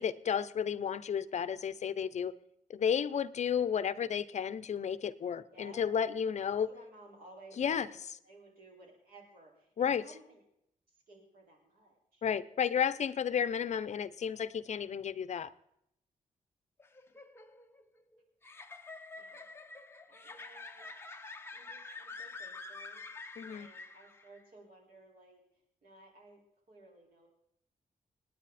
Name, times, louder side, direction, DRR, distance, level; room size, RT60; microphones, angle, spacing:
voice 1, 0.0-2.3 2.7-6.7 7.6-7.9 9.8-10.0 12.2-15.5 23.4-23.7, left 7 dB, 55° left, 14 dB, 0.7 m, -32 dB
voice 2, 5.5-5.9 6.6-7.9 8.2-10.4 10.9-12.2 19.1-19.5 20.1-20.9 21.5-23.1 23.5-25.4 25.8-27.3, right 2 dB, 85° right, -1 dB, 5.0 m, -57 dB
sound 1, 16.8-24.4, left 3 dB, 15° left, 0.9 m, -48 dB
27.5 x 9.8 x 4.2 m, 0.76 s
wide cardioid pair, 165°, 15 cm